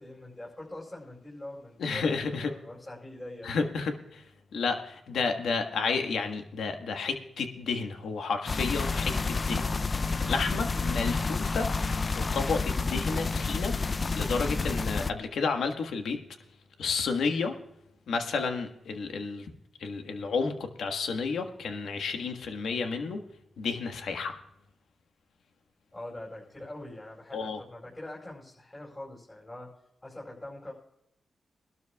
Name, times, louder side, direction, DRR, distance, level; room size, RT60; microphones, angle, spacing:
voice 1, 0.0-3.5 25.9-29.7 30.0-30.7, left 1 dB, 20° left, -4 dB, 5.0 m, -43 dB
voice 2, 1.8-2.5 3.4-4.2 4.5-9.8 10.2-16.2 16.8-17.5 18.1-19.5 19.8-23.2 23.6-24.3 27.3-27.6, left 4 dB, 85° left, 5 dB, 1.5 m, -31 dB
sound 1, 8.5-15.1, left 4 dB, 40° left, 0.5 m, -29 dB
23.0 x 12.5 x 2.4 m, 0.80 s
cardioid pair, 70°, 0 cm